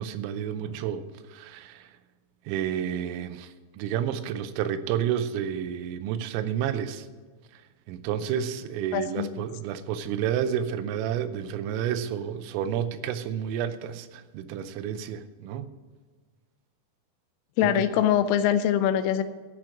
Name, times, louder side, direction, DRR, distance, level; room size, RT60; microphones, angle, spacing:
voice 1, 0.0-2.0 2.5-7.1 7.5-7.6 7.9-15.7 17.8-17.9, right 9 dB, 90° right, 12 dB, 3.4 m, -30 dB
voice 2, 8.9-9.3 17.6-19.2, left 10 dB, 85° left, 12 dB, 3.3 m, -23 dB
15.0 x 6.2 x 5.8 m, 1.4 s
omnidirectional pair, 5.8 m